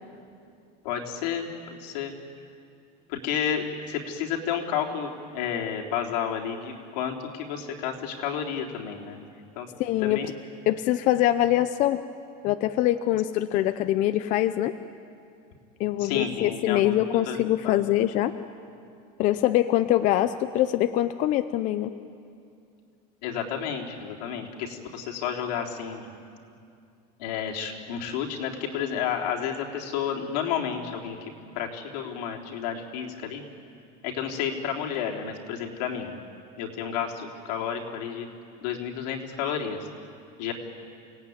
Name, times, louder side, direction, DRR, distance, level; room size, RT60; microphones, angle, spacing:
voice 1, 0.8-2.2 3.1-9.2 9.6-9.7 10.0-10.3 16.0-17.0 17.3-17.4 17.6-17.8 23.2-26.1 27.2-31.2 31.5-33.4 34.0-36.1 36.6-38.3 38.6-39.8 40.4-40.5, left 8 dB, 80° left, 0 dB, 3.6 m, -31 dB
voice 2, 9.8-10.2 10.7-12.0 12.4-14.7 15.8-18.3 19.2-21.9, left 13 dB, 40° left, 10 dB, 0.6 m, -23 dB
29.0 x 18.0 x 9.5 m, 2.4 s
cardioid pair, 175°, 21 cm